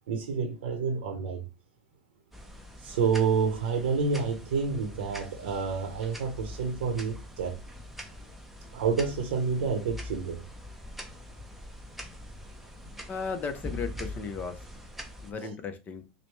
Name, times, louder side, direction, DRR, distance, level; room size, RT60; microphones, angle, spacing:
voice 1, 0.1-1.4 2.8-7.6 8.7-10.4 15.4-15.5, right 5 dB, 80° right, 0.9 m, -29 dB
sound 1, 2.3-15.3, left 1 dB, 5° right, 0.7 m, -43 dB
voice 2, 13.1-14.6 15.2-16.1, left 5 dB, 30° left, 0.8 m, -35 dB
4.9 x 2.3 x 3.2 m
supercardioid pair, 120°, 6 cm